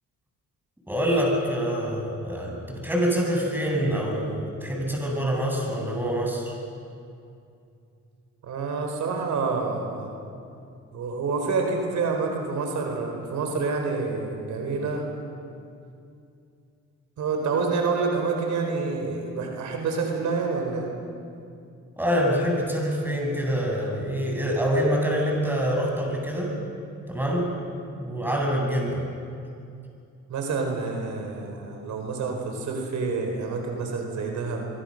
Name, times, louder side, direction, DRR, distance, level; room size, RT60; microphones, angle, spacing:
voice 1, 0.9-6.5 22.0-26.5 26.9-27.5 28.0-29.1, equal, 5° right, -1 dB, 7.3 m, -25 dB
voice 2, 8.4-10.1 10.9-15.1 17.2-20.9 30.3-34.7, right 4 dB, 70° right, 2 dB, 4.4 m, -28 dB
24.5 x 24.0 x 6.6 m, 2.5 s
cardioid pair, 90°, 30 cm